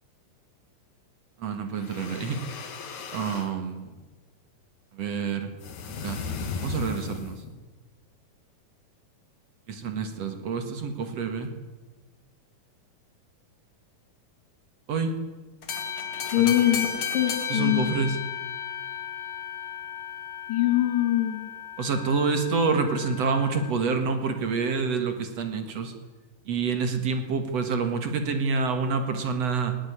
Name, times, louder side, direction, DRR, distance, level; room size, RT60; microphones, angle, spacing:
voice 1, 1.4-2.4 3.1-3.9 4.9-5.5 5.9-6.2 6.6-7.4 9.7-11.5 14.9-15.1 16.4-16.6 17.5-18.2 21.8-25.9 26.5-29.8, right 4 dB, 55° right, 7 dB, 2.6 m, -27 dB
sound 1, 1.7-3.5 5.6-7.5, left 4 dB, 60° left, 3.2 m, -36 dB
sound 2, 15.6-23.7, left 7 dB, 45° left, 2.5 m, -34 dB
voice 2, 16.3-16.9 17.1-18.0 20.5-21.4, left 13 dB, 85° left, 6 dB, 4.2 m, -23 dB
19.0 x 17.5 x 10.0 m, 1.3 s
omnidirectional pair, 3.8 m